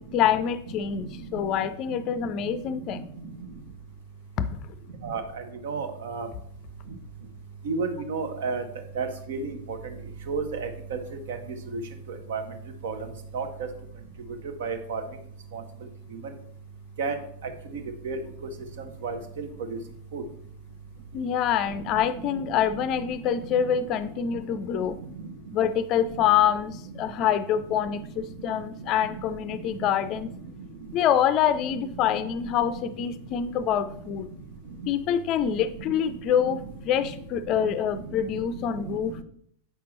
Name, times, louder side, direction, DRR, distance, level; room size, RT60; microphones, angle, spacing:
voice 1, 0.1-3.0 4.4-4.6 21.1-25.0 25.5-30.3 30.9-34.3 34.9-39.2, left 9 dB, 35° left, 14 dB, 0.5 m, -26 dB
voice 2, 5.6-6.3 7.6-8.6 9.0-9.8 10.3-11.0 11.3-11.4 11.7-11.8 12.3-12.4 12.8-12.9 13.3-13.5 14.6-15.0 15.5-15.6 17.0-17.2 18.0-18.2 19.0-19.5 20.1-20.2, right 4 dB, 55° right, 8 dB, 0.9 m, -30 dB
7.9 x 5.8 x 3.1 m, 0.67 s
figure-of-eight pair, 90°, 0 cm